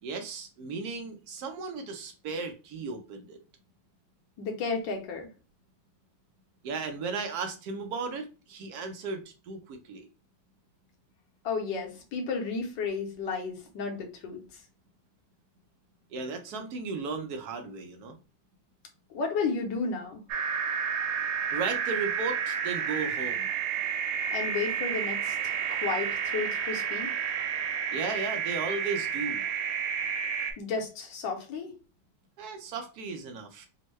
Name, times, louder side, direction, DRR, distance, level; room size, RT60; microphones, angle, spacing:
voice 1, 0.0-3.4 6.6-10.1 16.1-18.1 21.5-23.5 27.9-29.5 32.4-33.7, right 4 dB, 70° right, 5 dB, 1.0 m, -35 dB
voice 2, 4.4-5.3 11.4-14.4 19.1-20.2 24.3-27.1 30.6-31.7, left 4 dB, 75° left, 2 dB, 1.4 m, -33 dB
sound 1, 20.3-30.5, right 7 dB, 90° right, 1.4 m, -30 dB
3.5 x 2.1 x 3.1 m, 0.32 s
omnidirectional pair, 2.1 m